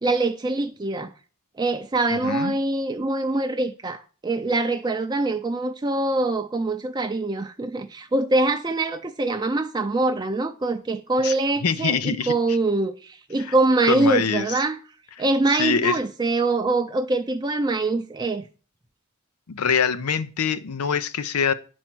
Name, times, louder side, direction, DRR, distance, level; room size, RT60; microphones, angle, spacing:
voice 1, 0.0-1.1 1.6-14.8 15.2-18.4, right 2 dB, 20° right, 0.4 m, -24 dB
voice 2, 2.1-2.5 11.2-11.3 11.6-12.6 13.4-13.5 13.8-14.6 15.2-16.0 19.5-21.5, left 6 dB, 85° left, 0.6 m, -24 dB
10.0 x 4.4 x 6.1 m
head